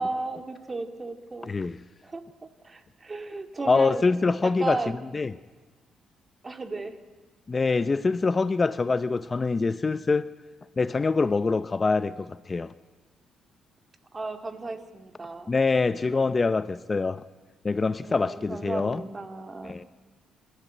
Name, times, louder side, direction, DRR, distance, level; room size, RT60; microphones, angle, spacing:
voice 1, 0.0-1.5 2.0-4.0 4.4-5.0 6.4-7.0 14.1-15.5 18.0-19.8, right 3 dB, 25° right, 2.2 m, -35 dB
voice 2, 1.5-1.8 3.7-5.3 7.5-10.3 10.8-12.7 15.5-17.2 17.6-19.0 19.6-19.8, left 4 dB, 30° left, 0.6 m, -25 dB
28.0 x 13.5 x 9.3 m
cardioid pair, 90°, 0 cm